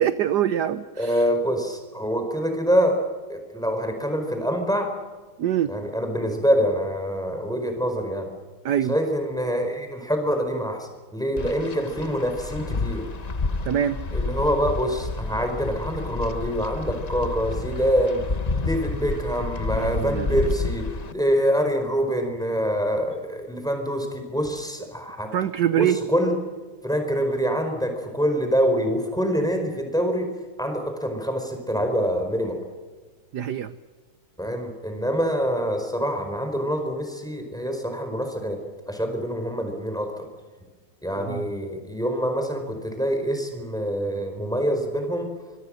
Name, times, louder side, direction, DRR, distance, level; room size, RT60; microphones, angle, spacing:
voice 1, 0.0-1.3 5.4-5.7 8.6-9.0 13.6-14.0 19.7-20.4 25.3-26.0 33.3-33.7 41.2-41.4, right 10 dB, 60° right, 12 dB, 1.2 m, -24 dB
voice 2, 1.0-3.0 3.3-4.9 5.7-8.3 8.9-13.1 14.1-18.2 18.5-25.3 25.8-26.3 26.8-30.3 30.6-32.6 34.4-38.6 38.9-40.3 41.0-45.2, equal, ahead, 4 dB, 4.7 m, -25 dB
Wind, 11.4-21.1, left 3 dB, 35° left, 0.6 m, -30 dB
24.5 x 23.5 x 6.6 m, 1.4 s
omnidirectional pair, 2.3 m